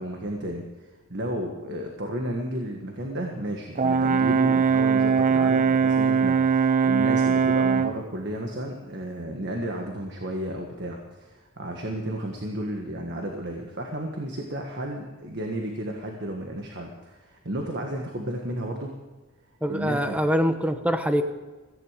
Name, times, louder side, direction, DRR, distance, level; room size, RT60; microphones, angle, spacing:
voice 1, 0.0-18.9 19.7-20.2, right 1 dB, 55° right, 2 dB, 1.6 m, -33 dB
Brass instrument, 3.8-8.0, right 6 dB, 35° right, 0.6 m, -21 dB
voice 2, 19.6-21.2, equal, 5° right, 8 dB, 1.0 m, -24 dB
17.0 x 15.0 x 5.1 m, 1.2 s
head